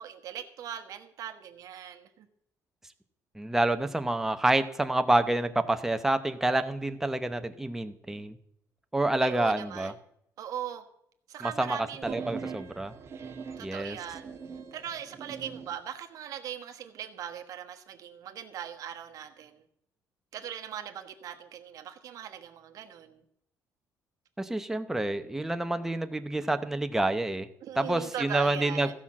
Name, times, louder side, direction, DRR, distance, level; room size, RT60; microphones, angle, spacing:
voice 1, 0.0-2.3 9.2-9.9 10.4-10.8 11.3-12.2 13.6-14.3 14.7-19.6 20.3-23.2 27.6-28.9, right 10 dB, 65° right, 1.2 m, -39 dB
voice 2, 3.3-8.4 8.9-9.9 11.4-12.9 13.6-14.0 24.4-27.5 27.8-28.9, right 2 dB, 5° right, 0.8 m, -28 dB
sound 1, 12.0-15.8, right 5 dB, 45° right, 1.5 m, -42 dB
15.0 x 5.8 x 7.4 m
cardioid pair, 130°, 6 cm